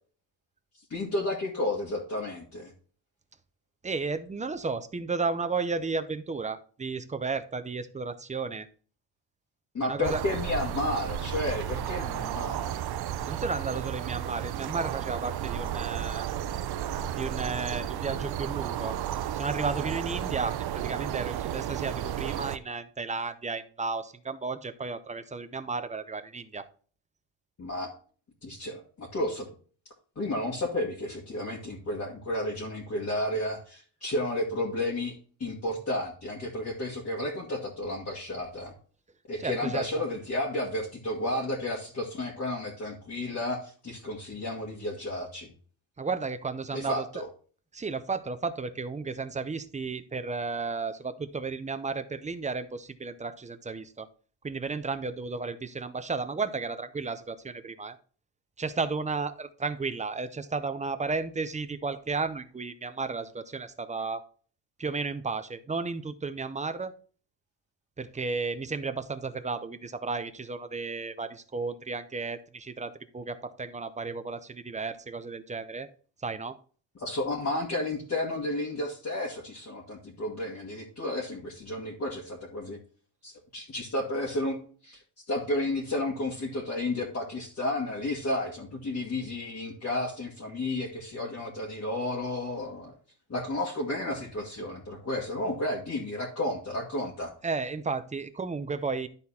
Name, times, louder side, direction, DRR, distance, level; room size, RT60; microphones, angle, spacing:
voice 1, 0.9-2.7 9.7-12.8 27.6-27.9 28.4-29.5 30.2-38.7 39.3-45.5 46.7-47.3 77.0-82.8 83.2-84.6 84.8-85.0 85.3-92.9 93.3-97.3, left 1 dB, 30° left, -3 dB, 1.9 m, -32 dB
voice 2, 3.8-8.7 9.8-10.2 13.3-16.3 17.2-19.0 19.3-26.7 39.4-39.9 46.0-47.0 47.7-54.1 54.4-58.0 58.6-64.2 64.8-66.9 68.0-75.9 76.2-76.6 97.4-99.1, right 4 dB, 15° right, 11 dB, 0.5 m, -33 dB
sound 1, 10.0-22.6, right 10 dB, 55° right, 0.7 m, -33 dB
11.5 x 4.1 x 4.2 m, 0.42 s
cardioid pair, 135°, 47 cm